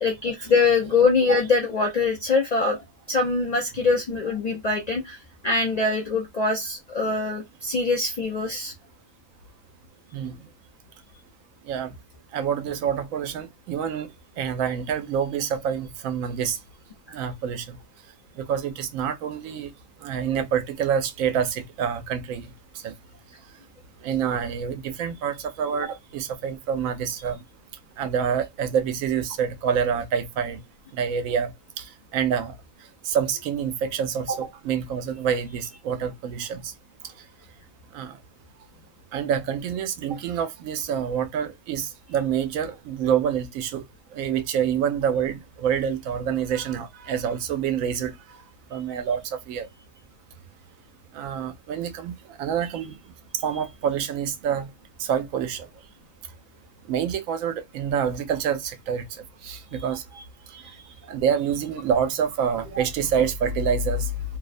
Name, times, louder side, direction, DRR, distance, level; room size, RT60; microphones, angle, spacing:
voice 1, 0.0-2.8 3.1-5.2 5.4-8.7 60.5-60.6, left 4 dB, 55° left, 0.4 m, -23 dB
voice 2, 12.3-14.1 14.4-16.6 17.1-17.8 18.4-19.7 20.0-22.5 22.8-22.9 24.0-27.4 28.0-30.6 30.9-32.5 33.0-36.7 37.9-38.2 39.1-43.8 44.1-48.2 48.7-49.7 51.1-53.0 53.4-54.7 55.0-55.7 56.9-59.0 59.4-60.0 61.1-64.2, right 7 dB, 85° right, 1.0 m, -27 dB
2.7 x 2.0 x 2.4 m
omnidirectional pair, 1.4 m